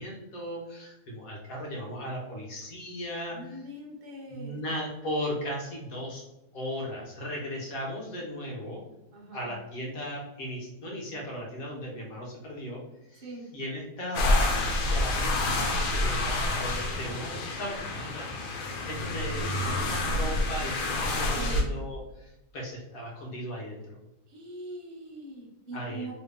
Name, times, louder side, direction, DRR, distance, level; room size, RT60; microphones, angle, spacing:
voice 1, 0.0-3.6 4.3-6.2 6.5-8.8 9.3-12.8 13.1-13.2 13.5-14.6 14.9-24.0 25.7-26.1, equal, 65° left, -2 dB, 1.3 m, -37 dB
voice 2, 3.3-4.6 9.1-9.5 13.2-13.5 21.4-21.7 24.3-26.1, right 1 dB, 45° right, -1 dB, 0.8 m, -42 dB
sound 1, 14.1-21.6, left 2 dB, 85° left, 1.3 m, -28 dB
3.2 x 2.7 x 3.4 m, 0.95 s
omnidirectional pair, 1.7 m